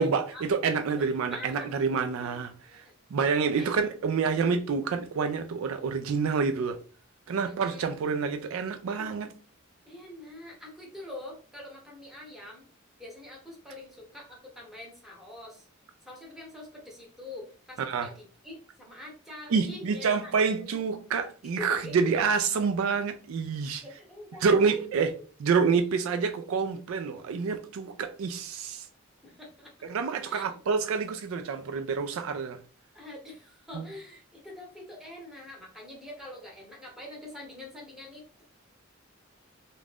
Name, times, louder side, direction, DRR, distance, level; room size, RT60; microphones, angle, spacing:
voice 1, 0.0-2.8 3.1-6.8 7.3-9.3 17.8-18.1 19.5-23.8 24.4-25.1 25.4-28.9 29.9-32.6 33.7-33.8, right 5 dB, 70° right, 0.3 m, -27 dB
voice 2, 0.9-1.7 2.2-2.9 3.2-3.8 7.5-7.9 9.0-9.1 9.8-12.7 13.0-15.6 16.0-20.4 21.6-22.1 23.8-25.1 25.7-26.1 29.2-29.9 30.3-30.6 32.9-38.4, left 1 dB, ahead, 0.8 m, -45 dB
2.4 x 2.2 x 3.3 m
head